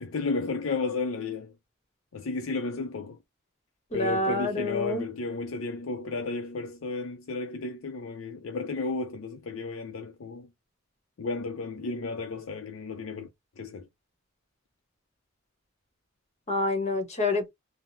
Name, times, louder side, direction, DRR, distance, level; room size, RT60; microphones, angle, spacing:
voice 1, 0.0-1.5 2.1-3.2 3.9-10.5 11.2-13.3 13.6-13.9, left 3 dB, 70° left, 0.5 m, -33 dB
voice 2, 3.9-5.0 16.5-17.5, left 2 dB, 35° left, 1.1 m, -27 dB
3.5 x 2.0 x 2.7 m
head